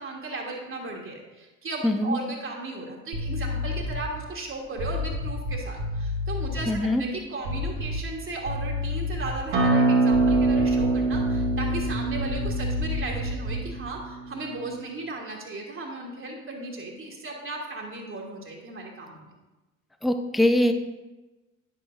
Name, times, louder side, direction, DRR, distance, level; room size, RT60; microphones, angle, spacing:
voice 1, 0.0-19.2, right 2 dB, 30° right, -1 dB, 1.5 m, -36 dB
voice 2, 1.8-2.2 6.7-7.0 20.0-20.7, left 1 dB, ahead, 8 dB, 0.4 m, -22 dB
sound 1, 3.1-4.1 4.7-6.7 7.4-8.2 8.5-9.4 10.1-13.7, left 2 dB, 75° right, 1.4 m, -30 dB
Acoustic guitar, 9.5-14.7, right 3 dB, 55° right, 1.5 m, -24 dB
9.5 x 7.0 x 2.6 m, 1.1 s
figure-of-eight pair, 55°, 41 cm